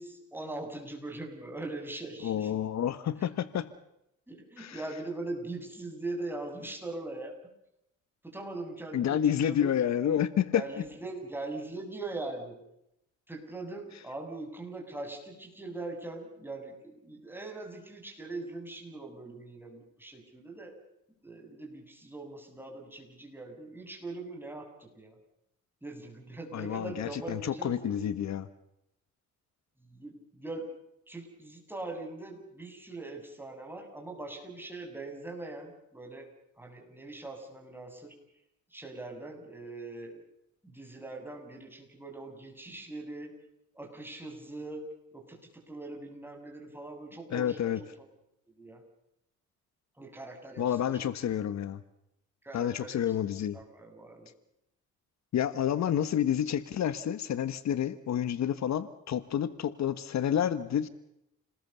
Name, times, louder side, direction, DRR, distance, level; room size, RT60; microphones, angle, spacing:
voice 1, 0.0-2.6 3.2-3.3 4.3-7.5 8.2-9.7 10.5-12.6 13.3-20.8 21.2-25.2 25.8-28.1 29.8-30.7 31.1-36.3 36.6-38.1 38.7-40.2 40.6-43.3 43.7-44.8 45.1-47.9 48.6-48.8 50.0-51.1 52.4-53.1 53.5-54.3, right 2 dB, 5° right, 1 dB, 7.6 m, -41 dB
voice 2, 2.2-3.7 4.6-4.8 8.9-10.6 26.5-28.5 47.3-47.8 50.6-51.8 52.5-53.6 55.3-60.9, left 9 dB, 65° left, 13 dB, 1.3 m, -29 dB
29.0 x 20.5 x 6.9 m, 0.81 s
cardioid pair, 90°, 30 cm